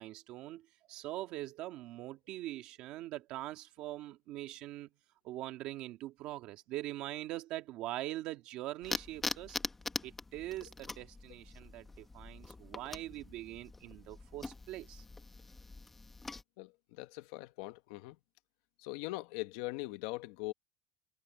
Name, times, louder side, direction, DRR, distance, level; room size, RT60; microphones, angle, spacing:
voice 1, 0.0-4.9 5.2-9.6 10.0-15.0, right 15 dB, 45° right, 2.1 m, -43 dB
sound 1, 8.8-16.4, left 3 dB, 10° left, 1.1 m, -43 dB
voice 2, 16.6-18.2 18.8-20.5, left 20 dB, 65° left, 1.1 m, -41 dB
cardioid pair, 175°, 2 cm